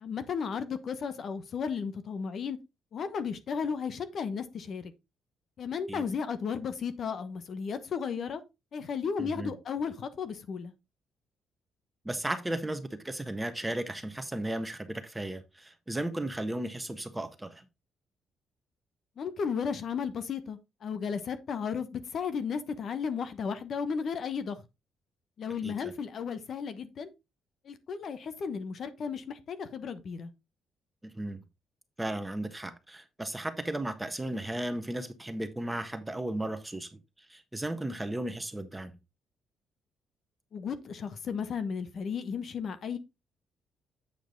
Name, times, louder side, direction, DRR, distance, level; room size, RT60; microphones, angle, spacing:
voice 1, 0.0-2.6 2.9-4.9 5.6-8.4 8.7-10.7 19.2-24.6 25.4-27.1 27.7-30.3 40.5-43.0, left 6 dB, 55° left, 1.1 m, -34 dB
voice 2, 9.2-9.5 12.0-17.6 25.6-25.9 31.0-31.4 32.0-36.9 37.3-39.0, right 1 dB, 10° right, 1.4 m, -35 dB
8.8 x 5.1 x 3.8 m
cardioid pair, 90°, 0 cm